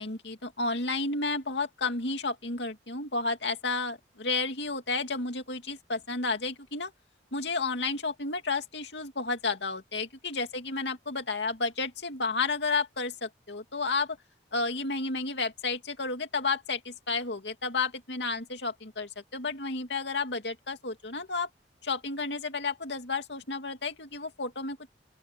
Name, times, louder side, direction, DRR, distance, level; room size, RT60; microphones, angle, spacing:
voice 1, 0.0-6.9 7.3-14.2 14.5-21.5 21.8-24.9, left 3 dB, 70° left, 2.7 m, -32 dB
open air
head